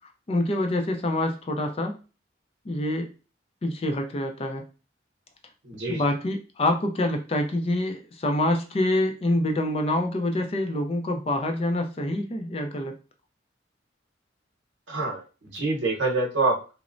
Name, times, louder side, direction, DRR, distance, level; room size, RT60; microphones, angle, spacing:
voice 1, 0.3-2.0 2.7-3.1 3.6-4.6 5.9-12.9, left 1 dB, 30° left, 5 dB, 0.4 m, -26 dB
voice 2, 5.6-6.1 14.9-16.7, right 3 dB, 85° right, 0 dB, 0.9 m, -26 dB
3.0 x 2.0 x 2.5 m, 0.33 s
head